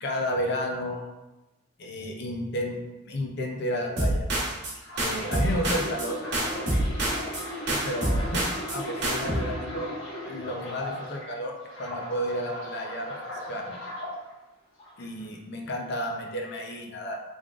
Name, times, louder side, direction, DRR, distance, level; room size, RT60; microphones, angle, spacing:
voice 1, 0.0-1.1 1.8-2.8 3.1-4.3 5.0-6.2 7.7-8.4 8.7-9.9 10.3-13.2 13.5-13.8 15.0-17.2, equal, 60° left, 1 dB, 0.5 m, -32 dB
sound 1, 4.0-4.7 5.0-6.1 6.3-7.4 7.7-8.8 9.0-9.4, right 1 dB, 60° right, 1.0 m, -27 dB
sound 2, 4.7-11.3 11.7-14.1 14.8-15.0, left 1 dB, 80° left, 1.4 m, -37 dB
3.5 x 3.4 x 2.4 m, 1.0 s
head